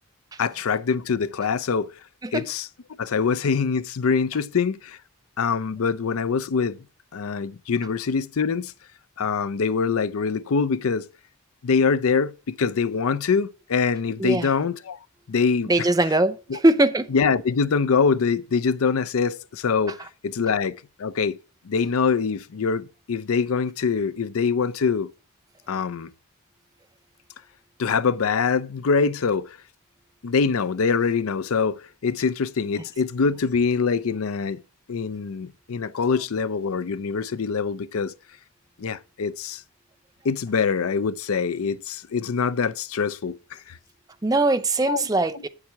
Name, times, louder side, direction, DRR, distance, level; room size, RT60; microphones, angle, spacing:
voice 1, 0.4-1.9 2.3-2.7 3.0-5.0 5.4-6.8 7.1-8.7 9.2-11.1 11.6-15.0 15.3-15.9 16.5-16.6 17.1-20.0 20.2-21.4 21.6-25.1 25.7-26.1 27.8-29.6 30.2-34.6 34.9-38.1 38.8-39.6 40.2-43.8 44.9-45.0 45.3-45.4, left 5 dB, 80° left, 0.5 m, -24 dB
voice 2, 15.7-16.3 16.6-17.1 44.2-45.5, right 2 dB, 15° right, 0.5 m, -20 dB
8.6 x 7.4 x 4.5 m
head